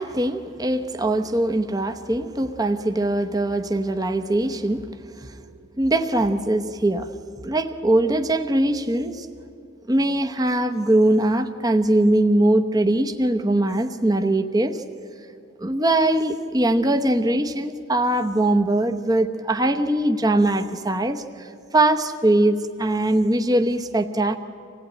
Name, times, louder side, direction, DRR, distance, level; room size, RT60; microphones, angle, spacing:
voice 1, 0.0-5.4 5.8-7.1 7.4-9.3 9.9-14.8 15.6-24.4, right 1 dB, 20° right, 6 dB, 0.9 m, -21 dB
26.0 x 17.5 x 9.2 m, 2.6 s
head